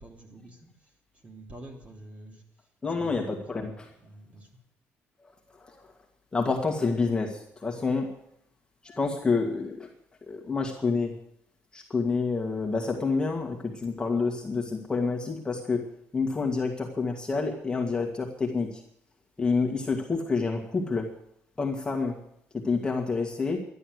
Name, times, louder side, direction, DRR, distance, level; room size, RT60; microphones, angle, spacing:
voice 1, 0.0-2.4 2.9-4.5, right 1 dB, 25° right, 2 dB, 3.3 m, -48 dB
voice 2, 2.8-3.9 5.6-5.9 6.3-8.2 8.8-9.9 10.3-11.1 11.7-15.8 16.1-18.8 19.4-21.1 21.6-22.2 22.5-23.6, left 4 dB, 15° left, 0 dB, 1.9 m, -28 dB
12.5 x 11.5 x 7.9 m, 0.74 s
cardioid pair, 125°, 5 cm